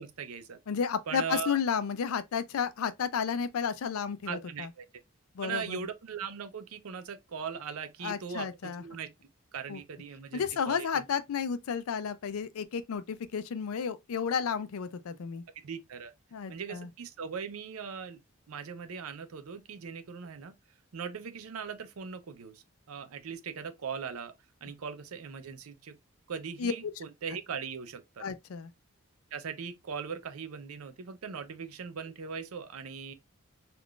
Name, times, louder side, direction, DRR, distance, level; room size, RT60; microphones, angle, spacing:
voice 1, 0.0-0.6 1.1-1.6 4.3-4.9 5.4-9.1 9.5-11.1 15.6-16.1 16.5-18.2 18.5-20.5 20.9-24.4 24.6-26.0 26.3-28.3 29.3-33.1, right 6 dB, 85° right, 0.5 m, -39 dB
voice 2, 0.7-4.7 5.4-5.8 8.0-8.8 9.7-9.8 10.3-15.4 16.3-16.9 26.6-26.7 28.2-28.7, left 6 dB, 85° left, 0.4 m, -32 dB
3.6 x 2.4 x 2.3 m
head